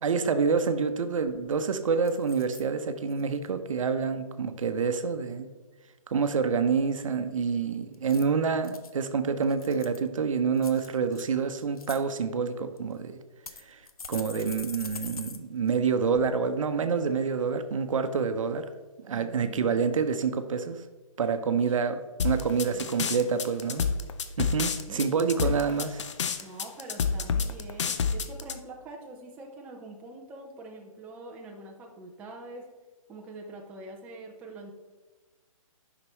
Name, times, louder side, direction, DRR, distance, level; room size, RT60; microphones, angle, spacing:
voice 1, 0.0-5.5 6.1-13.2 13.7-13.8 14.1-18.7 19.0-20.8 21.2-23.8 24.4-25.9, right 5 dB, 65° right, 9 dB, 0.8 m, -27 dB
sound 1, 0.9-1.0 1.3-1.6 2.0-2.6 3.1-3.5 7.9-8.9 9.4-10.1 10.6-11.2 11.6-12.0 12.8-12.9 13.5-15.4 15.7-15.8 16.1-16.2, left 5 dB, 85° left, 0.8 m, -43 dB
voice 2, 19.0-19.8 21.4-21.8 22.7-23.4 24.9-25.7 26.4-32.7 33.1-34.7, right 2 dB, 10° right, 0 dB, 0.5 m, -45 dB
sound 2, 22.2-28.5, left 5 dB, 55° left, 0.6 m, -28 dB
9.5 x 5.9 x 3.0 m, 1.3 s
hypercardioid pair, 155°, 18 cm